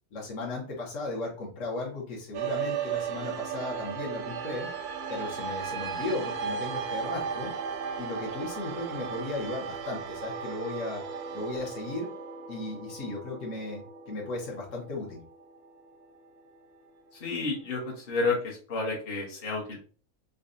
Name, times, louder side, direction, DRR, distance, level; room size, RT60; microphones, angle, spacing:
voice 1, 0.1-4.7 5.1-7.5 8.0-11.0 11.3-12.1 12.5-15.2, left 2 dB, 60° left, -3 dB, 1.4 m, -36 dB
sound 1, 2.3-16.9, right 7 dB, 90° right, 1.1 m, -36 dB
voice 2, 17.2-17.8 18.1-19.8, left 3 dB, 40° left, -4 dB, 1.2 m, -30 dB
5.2 x 2.3 x 2.6 m, 0.40 s
omnidirectional pair, 1.6 m